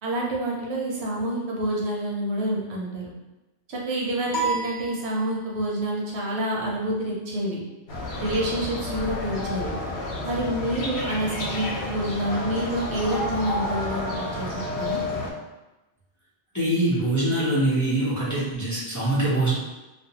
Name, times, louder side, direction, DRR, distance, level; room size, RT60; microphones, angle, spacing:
voice 1, 0.0-3.1 3.7-7.6 8.1-9.7 10.2-14.1 14.4-14.5 14.8-15.0, right 1 dB, 90° right, -3 dB, 1.0 m, -28 dB
sound 1, 4.3-5.8, right 3 dB, 50° left, 1.0 m, -30 dB
sound 2, 7.9-15.3, left 2 dB, 85° left, 0.9 m, -30 dB
voice 2, 16.5-19.5, right 1 dB, 20° left, -10 dB, 0.6 m, -23 dB
2.4 x 2.1 x 2.7 m, 1.1 s
omnidirectional pair, 1.1 m